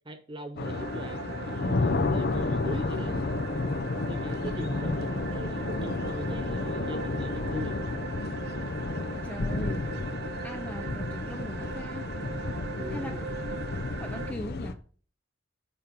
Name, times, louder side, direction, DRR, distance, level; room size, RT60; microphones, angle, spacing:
voice 1, 0.0-3.2 4.0-7.8 12.8-13.3, right 1 dB, 25° right, 1.0 m, -41 dB
sound 1, 0.6-14.7, left 2 dB, 50° left, 0.7 m, -31 dB
sound 2, 0.6-14.3, right 7 dB, 55° right, 0.5 m, -41 dB
voice 2, 9.2-9.9 10.4-12.1 12.9-13.3 13.9-14.8, equal, 5° left, 0.5 m, -40 dB
7.3 x 4.4 x 5.2 m
head